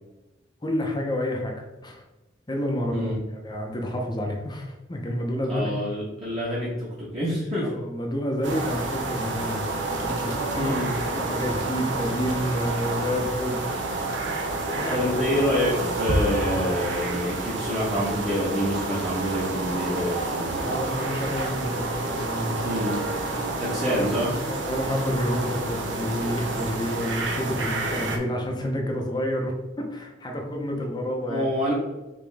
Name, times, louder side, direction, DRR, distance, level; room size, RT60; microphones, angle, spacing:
voice 1, 0.6-1.6 1.8-2.0 2.5-5.7 7.6-10.7 11.1-13.8 14.7-15.1 20.5-22.6 23.3-29.6 29.9-31.5, equal, 25° left, 1 dB, 0.7 m, -29 dB
voice 2, 5.5-7.7 10.6-10.9 14.9-20.7 22.6-23.0 23.6-24.3 26.9-27.0 31.3-31.7, equal, 25° right, -8 dB, 1.1 m, -27 dB
sound 1, 8.4-28.2, right 2 dB, 70° right, 0.7 m, -29 dB
5.0 x 2.9 x 3.4 m, 1.0 s
head